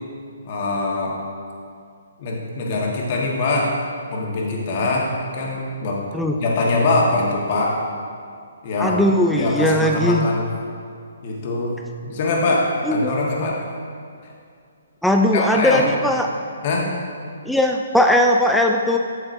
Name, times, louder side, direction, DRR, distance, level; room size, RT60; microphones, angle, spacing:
voice 1, 0.4-1.2 2.2-3.8 4.1-6.0 6.4-7.8 8.6-10.5 11.2-11.7 12.0-13.6 14.2-14.3 15.3-15.8 16.6-16.9, left 2 dB, 45° left, -2 dB, 1.5 m, -23 dB
voice 2, 8.8-10.3 12.9-13.1 15.0-16.3 17.4-19.0, left 1 dB, ahead, 2 dB, 0.3 m, -18 dB
7.8 x 7.6 x 2.7 m, 2.3 s
hypercardioid pair, 140°, 0 cm